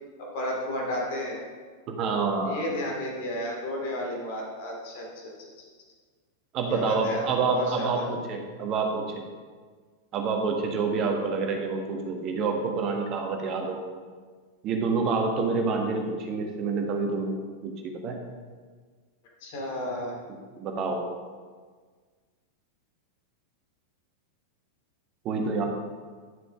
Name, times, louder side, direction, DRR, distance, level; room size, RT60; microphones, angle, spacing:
voice 1, 0.2-1.4 2.5-5.5 6.7-8.1 19.4-20.1, left 1 dB, 50° left, -1 dB, 2.4 m, -32 dB
voice 2, 1.9-2.6 6.5-9.2 10.1-13.8 14.6-17.4 17.6-18.2 20.6-21.0 25.2-25.7, right 4 dB, 35° right, 2 dB, 1.4 m, -27 dB
10.5 x 6.7 x 3.6 m, 1.5 s
figure-of-eight pair, 90°, 0 cm